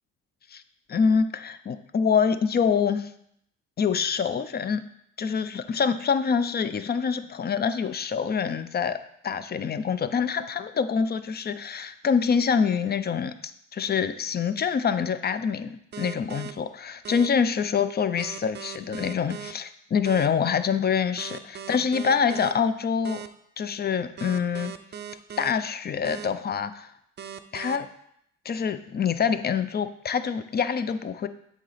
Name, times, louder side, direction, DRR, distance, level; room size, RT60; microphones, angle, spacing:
voice 1, 0.9-3.1 3.8-4.8 5.2-9.0 9.2-23.2 23.6-24.7 25.4-26.9 27.5-27.9 28.4-31.3, left 6 dB, 35° left, 12 dB, 0.4 m, -26 dB
sound 1, 15.9-16.5 17.0-17.3 18.2-19.5 20.0-20.3 21.2-22.5 23.0-23.3 24.2-25.5 26.0-26.3 27.2-27.8, right 9 dB, 35° right, 0.5 m, -38 dB
7.2 x 3.9 x 4.1 m, 0.72 s
cardioid pair, 90°, 30 cm